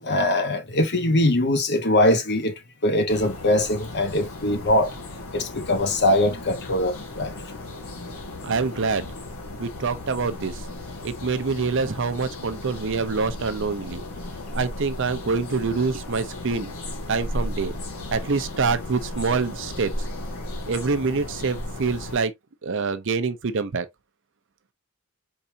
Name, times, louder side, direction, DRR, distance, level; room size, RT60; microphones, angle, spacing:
voice 1, 0.0-7.3, left 1 dB, 50° left, 1.1 m, -22 dB
sound 1, 3.1-22.2, left 1 dB, 80° left, 1.8 m, -35 dB
voice 2, 8.4-9.1 9.6-10.5 11.0-14.0 14.5-16.7 17.1-17.8 18.1-19.9 20.7-22.3 22.6-23.9, right 4 dB, 60° right, 0.6 m, -25 dB
4.7 x 4.0 x 2.7 m
head